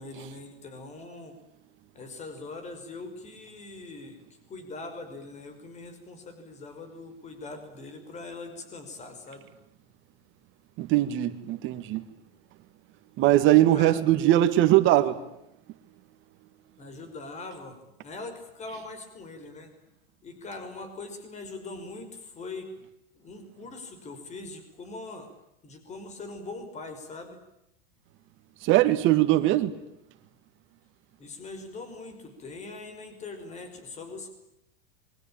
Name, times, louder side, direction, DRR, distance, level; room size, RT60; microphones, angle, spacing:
voice 1, 0.0-1.4 1.9-4.2 4.5-9.4 13.7-14.1 14.8-15.0 16.8-19.7 20.2-22.7 23.1-25.3 25.6-27.4 31.2-34.3, left 3 dB, 20° left, 5.5 m, -42 dB
voice 2, 10.8-12.0 13.2-15.2 28.6-29.7, right 14 dB, 40° right, 2.0 m, -21 dB
26.5 x 23.5 x 8.9 m
supercardioid pair, 140°, 30 cm